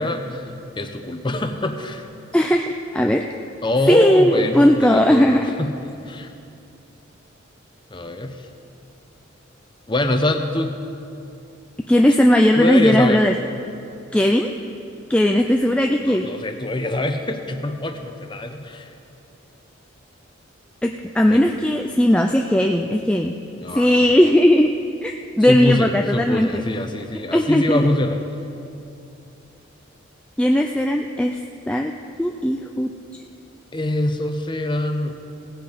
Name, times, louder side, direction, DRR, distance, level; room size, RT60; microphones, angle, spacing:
voice 1, 0.0-2.1 3.6-6.3 7.9-8.5 9.9-10.8 12.6-13.2 16.0-18.9 21.3-21.5 23.6-24.1 25.4-28.2 33.7-35.2, left 1 dB, 25° left, 7 dB, 0.7 m, -24 dB
voice 2, 2.3-3.2 3.9-5.5 11.9-13.3 14.1-14.5 15.1-16.3 20.8-23.4 23.7-24.7 25.0-26.6 27.3-27.9 30.4-31.4 31.7-31.9 32.2-32.9, left 1 dB, 5° left, 3 dB, 0.3 m, -17 dB
17.0 x 8.4 x 5.0 m, 2.7 s
head